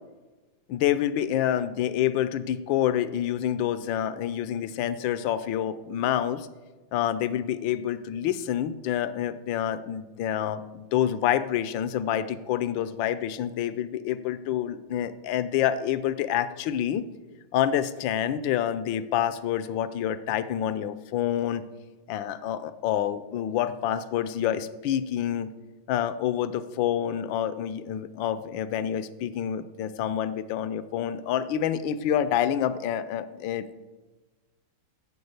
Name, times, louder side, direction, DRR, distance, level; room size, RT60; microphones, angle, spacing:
voice 1, 0.7-6.5 6.9-17.0 17.5-21.6 22.1-25.5 25.9-33.8, left 10 dB, 80° left, 13 dB, 1.4 m, -27 dB
11.0 x 7.0 x 8.0 m, 1.2 s
omnidirectional pair, 2.1 m